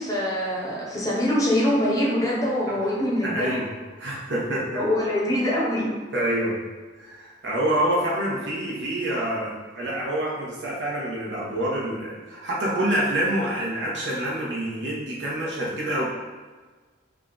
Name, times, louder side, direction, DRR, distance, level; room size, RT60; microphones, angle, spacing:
voice 1, 0.0-3.6 4.7-5.9, left 1 dB, 20° left, -6 dB, 0.8 m, -24 dB
voice 2, 3.2-3.7 4.0-4.8 6.1-6.6 7.0-16.1, right 1 dB, 70° right, -5 dB, 1.0 m, -27 dB
3.7 x 2.4 x 3.8 m, 1.4 s
head